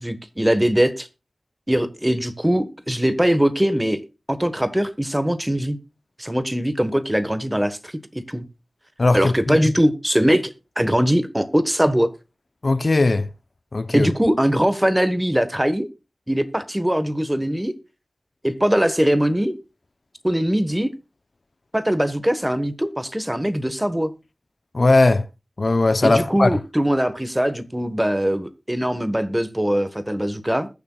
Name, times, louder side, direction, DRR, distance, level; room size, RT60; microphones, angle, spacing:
voice 1, 0.0-1.1 1.7-4.0 4.3-5.8 6.2-8.4 9.1-10.5 10.8-12.1 13.9-15.9 16.3-17.7 18.4-19.5 20.2-20.9 21.7-24.1 26.0-30.7, equal, 10° right, 1.3 m, -21 dB
voice 2, 9.0-9.6 12.6-13.3 13.7-14.1 24.7-25.2 25.6-26.6, left 2 dB, 55° left, 0.7 m, -18 dB
20.5 x 7.0 x 2.3 m
wide cardioid pair, 60°, 0 cm